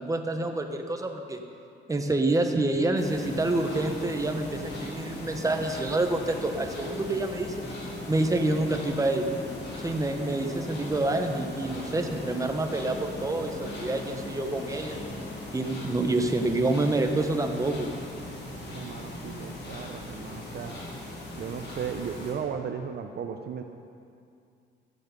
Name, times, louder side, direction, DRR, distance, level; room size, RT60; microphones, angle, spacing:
voice 1, 0.0-1.4 1.9-7.5 8.1-9.3 9.8-15.0 15.5-17.9, right 2 dB, 15° right, 4 dB, 1.2 m, -27 dB
sound 1, 3.0-22.3, left 1 dB, 55° left, 3.2 m, -38 dB
voice 2, 18.7-20.8 21.3-23.6, right 7 dB, 55° right, 6 dB, 0.7 m, -36 dB
14.5 x 8.6 x 5.3 m, 2.4 s
cardioid pair, 90°, 20 cm